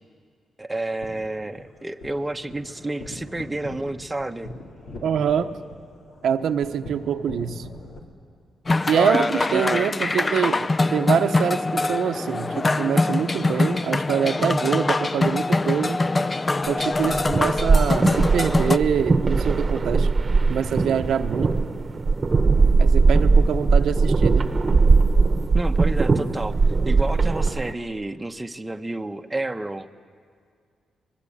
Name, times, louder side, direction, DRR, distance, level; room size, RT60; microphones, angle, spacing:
voice 1, 0.6-4.5 9.5-9.7 25.5-26.6 26.9-29.9, right 2 dB, 15° right, 5 dB, 1.0 m, -30 dB
sound 1, 0.8-8.0, left 2 dB, 70° left, 3.9 m, -41 dB
voice 2, 5.0-5.6 6.2-7.6 8.9-16.0 16.7-20.1 20.5-21.6 22.8-24.5, right 8 dB, 75° right, 7 dB, 0.9 m, -25 dB
sound 2, 8.7-18.8, left 2 dB, 30° left, 0.5 m, -23 dB
sound 3, 16.9-27.7, right 4 dB, 30° right, 1.1 m, -20 dB
24.0 x 21.0 x 8.7 m, 2.1 s
cardioid pair, 90°, 0 cm